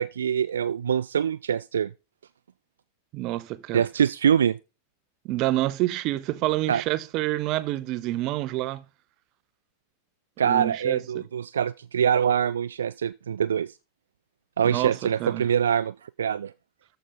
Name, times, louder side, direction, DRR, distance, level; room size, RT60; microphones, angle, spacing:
voice 1, 0.0-1.9 3.7-4.6 6.7-6.8 10.4-13.7 14.6-16.5, right 8 dB, 65° right, 0.4 m, -24 dB
voice 2, 3.1-3.8 5.2-8.8 10.4-11.2 14.6-15.4, right 17 dB, 40° right, 0.7 m, -28 dB
14.0 x 5.0 x 4.0 m
figure-of-eight pair, 90°, 0 cm